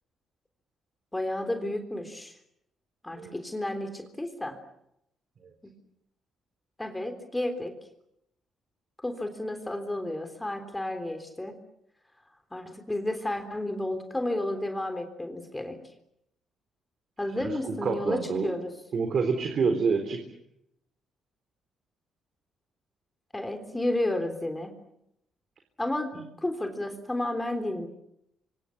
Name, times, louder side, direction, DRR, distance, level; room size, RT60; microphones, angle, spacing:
voice 1, 1.1-2.4 3.0-4.6 5.6-5.7 6.8-7.8 9.0-11.6 12.5-15.8 17.2-18.7 23.3-24.8 25.8-27.9, left 1 dB, 10° left, 7 dB, 3.6 m, -32 dB
voice 2, 17.4-18.5 18.9-20.2 26.1-26.2, right 5 dB, 55° right, 5 dB, 3.8 m, -28 dB
27.5 x 25.0 x 7.4 m, 0.80 s
cardioid pair, 90°, 0 cm